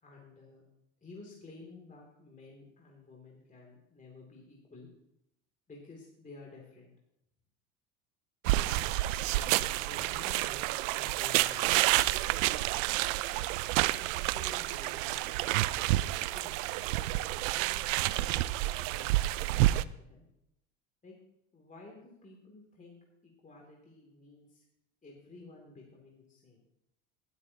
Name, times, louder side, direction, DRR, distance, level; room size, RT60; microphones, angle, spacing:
voice 1, 0.0-0.6 1.0-4.9 5.7-6.9 9.3-12.4 13.8-15.9 16.3-16.5 17.1-18.5 18.9-20.2 21.0-21.1 21.5-23.0 23.2-24.6 25.0-26.6, left 3 dB, 20° left, -1 dB, 2.8 m, -52 dB
sound 1, 8.4-19.8, right 17 dB, 70° right, 0.5 m, -29 dB
19.5 x 9.1 x 2.9 m, 0.83 s
hypercardioid pair, 85°, 40 cm